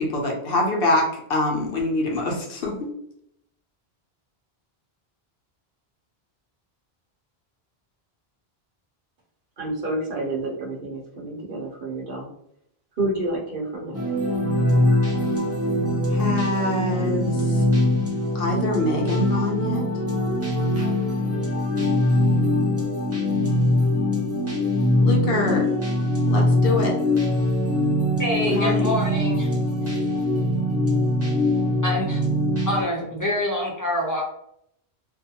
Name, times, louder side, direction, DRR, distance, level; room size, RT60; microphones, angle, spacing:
voice 1, 0.0-2.9 16.1-17.6 18.3-19.9 25.0-25.7 26.3-26.9 28.5-29.0, left 2 dB, 70° left, 0 dB, 0.8 m, -25 dB
voice 2, 9.6-12.3 13.0-14.0, right 2 dB, 60° right, -2 dB, 0.9 m, -29 dB
sound 1, 13.9-32.8, left 1 dB, 25° right, 0.3 m, -22 dB
voice 3, 28.1-29.6 29.9-30.0 31.8-32.2 32.7-34.2, left 1 dB, 25° left, -5 dB, 0.5 m, -26 dB
2.4 x 2.2 x 2.7 m, 0.73 s
omnidirectional pair, 1.0 m